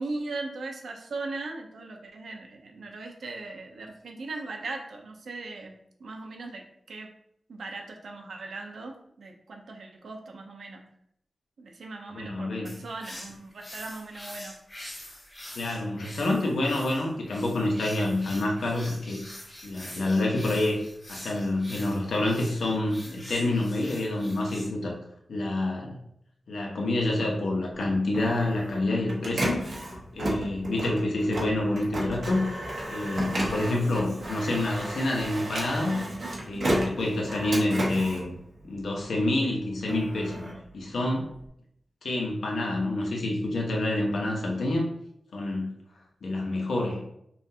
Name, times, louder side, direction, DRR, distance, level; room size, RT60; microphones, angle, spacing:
voice 1, 0.0-7.1 7.5-10.8 11.6-14.6, right 3 dB, 75° right, 3 dB, 0.7 m, -39 dB
voice 2, 12.1-12.8 15.5-19.2 19.6-20.8 21.1-24.9 25.3-26.0 26.5-29.6 30.1-32.5 32.9-36.0 36.4-38.3 38.6-40.4 40.7-41.4 42.0-44.9 45.3-45.8 46.2-47.0, left 2 dB, 80° left, 0 dB, 0.9 m, -27 dB
sound 1, 12.7-24.7, left 1 dB, 25° left, 0.9 m, -45 dB
Printer, 27.8-39.2 39.6-41.5, right 1 dB, 50° right, 1.0 m, -33 dB
5.6 x 2.5 x 2.8 m, 0.72 s
wide cardioid pair, 170°, 0 cm